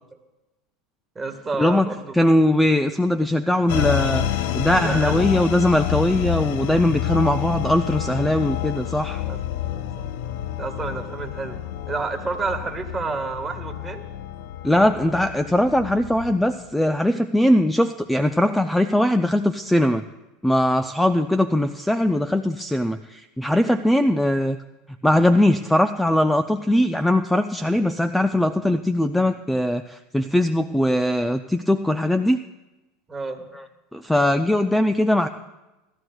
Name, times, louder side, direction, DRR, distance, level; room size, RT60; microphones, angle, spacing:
voice 1, 1.1-2.1 4.8-5.2 9.3-10.1 10.6-14.0 33.1-33.5, right 3 dB, 20° right, 4 dB, 1.5 m, -30 dB
voice 2, 2.1-4.2 4.5-9.2 14.6-20.0 20.4-24.6 25.0-32.4 33.5-33.6 33.9-35.3, left 1 dB, 5° left, 10 dB, 0.4 m, -20 dB
sound 1, 3.7-16.7, left 11 dB, 70° left, 0.5 m, -29 dB
18.5 x 13.0 x 2.3 m, 1.0 s
supercardioid pair, 105°, 0 cm